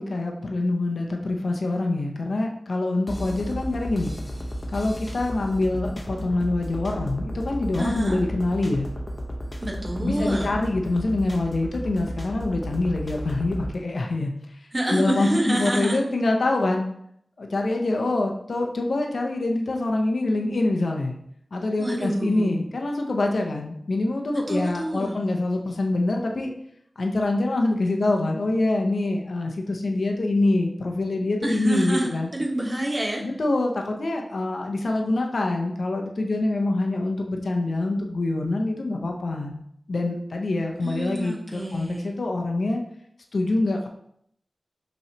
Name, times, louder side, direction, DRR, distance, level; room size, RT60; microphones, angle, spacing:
voice 1, 0.0-4.1 4.7-8.9 10.0-14.3 14.9-16.8 17.4-21.2 21.5-26.5 27.0-32.3 33.2-39.6 39.9-42.8 43.3-43.9, left 2 dB, 75° left, 2 dB, 0.6 m, -25 dB
sound 1, 3.1-13.8, equal, 30° left, 0.8 m, -34 dB
voice 2, 7.8-8.2 9.6-10.5 14.7-16.0 21.8-22.5 24.5-25.2 31.4-33.2 40.8-42.1, right 1 dB, 30° right, -1 dB, 1.0 m, -27 dB
5.6 x 3.1 x 2.8 m, 0.71 s
wide cardioid pair, 60°, 0 cm